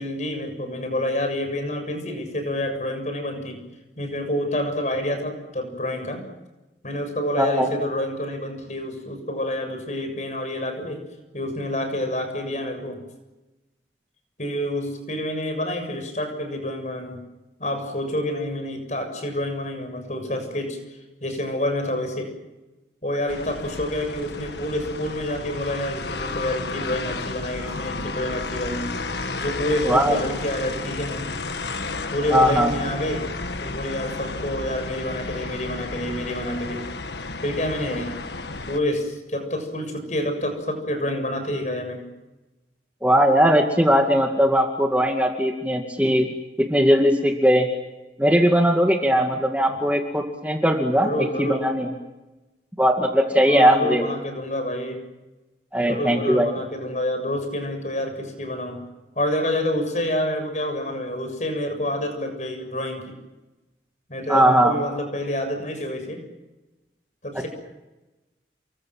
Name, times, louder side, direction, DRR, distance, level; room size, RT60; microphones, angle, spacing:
voice 1, 0.0-3.6 4.0-6.3 6.8-11.0 11.3-13.0 14.4-17.2 17.6-22.3 23.0-28.9 29.4-31.4 32.1-33.3 33.6-36.8 37.4-38.1 38.7-42.0 49.7-49.8 51.0-51.7 53.5-55.0 55.8-58.8 59.2-63.2 64.1-66.2 67.2-67.5, left 1 dB, 40° left, 6 dB, 7.1 m, -28 dB
voice 2, 7.4-7.7 29.9-30.2 32.3-32.7 43.0-46.3 46.6-47.7 48.2-51.1 51.4-51.9 52.8-54.1 55.7-56.5 64.3-64.7, equal, 10° right, 2 dB, 2.2 m, -19 dB
sound 1, 23.3-38.8, left 3 dB, 75° left, 1.6 m, -32 dB
29.5 x 23.5 x 7.7 m, 1.1 s
head